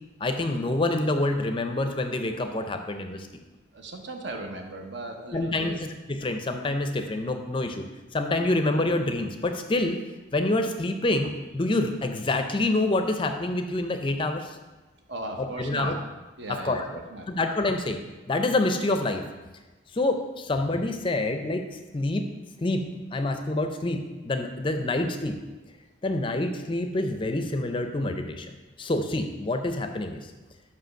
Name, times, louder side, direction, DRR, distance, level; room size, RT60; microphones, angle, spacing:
voice 1, 0.2-3.3 5.3-5.7 6.1-7.9 8.1-10.0 10.3-14.6 15.4-15.9 16.6-16.9 17.3-18.0 18.3-19.2 19.9-21.6 21.9-22.3 22.6-22.8 23.1-24.0 24.2-25.3 26.0-28.5 28.8-30.3, left 2 dB, 25° left, 6 dB, 0.5 m, -27 dB
voice 2, 3.7-5.8 15.1-16.0 16.4-17.3, right 2 dB, 65° right, 3 dB, 1.0 m, -37 dB
5.5 x 5.1 x 6.3 m, 1.2 s
head